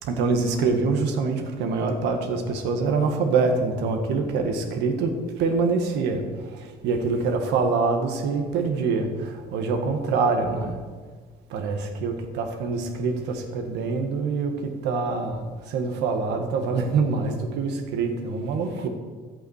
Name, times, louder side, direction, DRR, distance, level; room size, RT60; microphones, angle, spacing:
voice 1, 0.0-10.8 11.5-18.9, right 4 dB, 85° right, 5 dB, 1.7 m, -25 dB
11.5 x 8.4 x 6.6 m, 1.5 s
cardioid pair, 110°, 17 cm